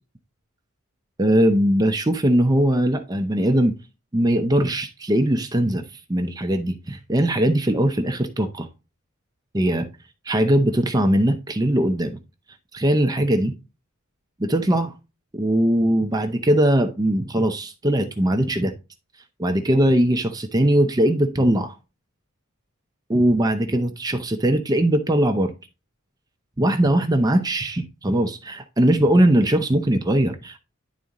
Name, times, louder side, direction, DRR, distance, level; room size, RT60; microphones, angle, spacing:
voice 1, 1.2-3.7 4.1-8.7 9.5-9.9 10.2-12.2 12.7-13.5 14.4-14.9 15.3-18.7 19.4-21.8 23.1-25.5 26.6-30.6, right 1 dB, 20° right, 0.7 m, -20 dB
11.0 x 4.2 x 3.8 m
head